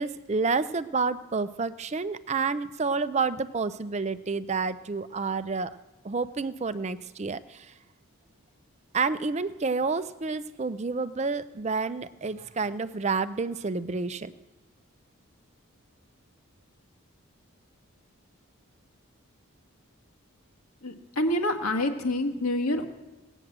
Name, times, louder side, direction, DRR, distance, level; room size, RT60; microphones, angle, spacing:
voice 1, 0.0-5.8 6.0-7.7 8.9-14.3, right 4 dB, 30° right, 13 dB, 0.4 m, -29 dB
voice 2, 20.8-22.9, left 1 dB, 85° left, 4 dB, 1.8 m, -27 dB
17.5 x 8.9 x 7.4 m, 1.2 s
head